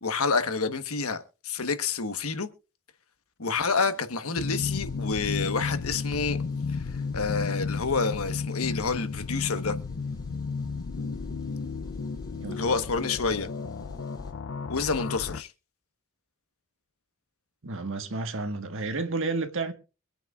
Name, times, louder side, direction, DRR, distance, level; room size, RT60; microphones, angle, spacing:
voice 1, 0.0-2.5 3.4-6.4 6.7-9.8 12.5-13.5 14.7-15.5, left 4 dB, 80° left, 1.2 m, -28 dB
sound 1, 3.8-14.3, right 2 dB, 20° left, 5.8 m, -53 dB
sound 2, 4.4-15.4, left 4 dB, 65° left, 0.5 m, -33 dB
voice 2, 17.6-19.7, right 3 dB, 65° right, 1.6 m, -31 dB
24.0 x 9.0 x 2.4 m
head